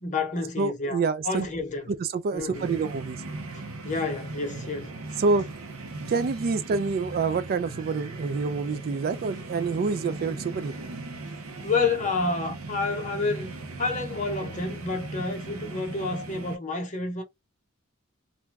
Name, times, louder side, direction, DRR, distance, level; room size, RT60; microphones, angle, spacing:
voice 1, 0.0-1.9 2.3-2.7 3.5-5.2 11.6-17.2, left 3 dB, 35° left, 0.8 m, -29 dB
voice 2, 0.6-1.5 1.9-3.2 5.2-5.5 6.1-10.7, right 4 dB, 45° right, 0.3 m, -27 dB
sound 1, 2.5-16.6, right 2 dB, 80° right, 0.7 m, -38 dB
2.5 x 2.3 x 3.2 m
head